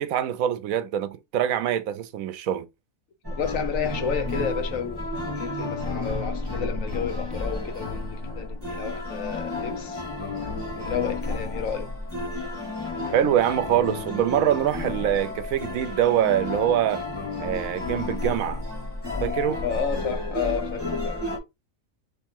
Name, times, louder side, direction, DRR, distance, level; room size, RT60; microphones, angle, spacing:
voice 1, 0.0-2.7 13.1-17.0 17.4-18.6 19.2-19.6, right 10 dB, 90° right, 1.0 m, -24 dB
sound 1, 3.2-21.4, left 2 dB, 20° right, 1.9 m, -31 dB
voice 2, 3.4-10.0 10.8-11.9 19.6-21.2, left 7 dB, 75° left, 1.2 m, -31 dB
3.6 x 3.1 x 4.5 m
omnidirectional pair, 1.4 m